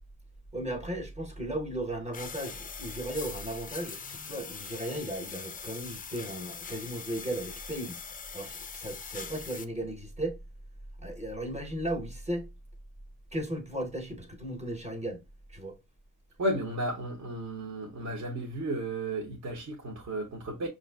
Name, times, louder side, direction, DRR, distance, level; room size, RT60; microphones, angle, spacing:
voice 1, 0.5-8.0 8.3-10.4 11.0-12.5 13.3-15.2 15.5-15.8, right 1 dB, 20° right, 0.9 m, -36 dB
sound 1, 2.1-9.6, left 6 dB, 25° left, 0.3 m, -42 dB
voice 2, 16.4-20.7, right 1 dB, 50° right, 0.8 m, -33 dB
5.6 x 2.5 x 2.2 m
wide cardioid pair, 135°, 36 cm